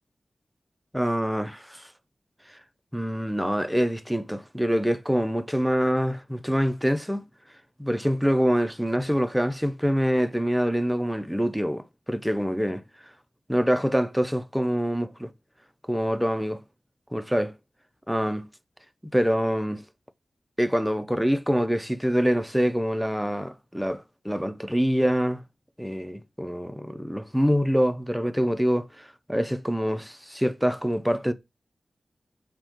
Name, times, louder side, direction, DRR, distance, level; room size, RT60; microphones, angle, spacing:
voice 1, 0.9-1.8 2.9-7.3 7.8-12.8 13.5-15.3 15.9-16.6 17.1-17.6 18.1-18.5 19.0-19.8 20.6-25.4 25.8-31.3, equal, ahead, 0.3 m, -25 dB
3.3 x 2.1 x 2.9 m
wide cardioid pair, 85°, 0 cm